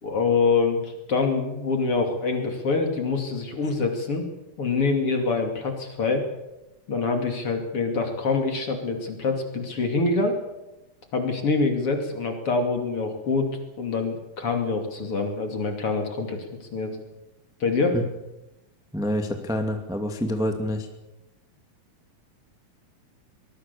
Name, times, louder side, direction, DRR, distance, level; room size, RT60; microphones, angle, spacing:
voice 1, 0.0-4.2 4.6-6.3 6.9-10.4 11.1-16.5 16.7-17.0 17.6-18.0, left 4 dB, 45° left, 4 dB, 3.3 m, -25 dB
voice 2, 18.9-20.9, equal, ahead, 4 dB, 1.7 m, -27 dB
23.5 x 20.5 x 7.0 m, 0.95 s
omnidirectional pair, 3.9 m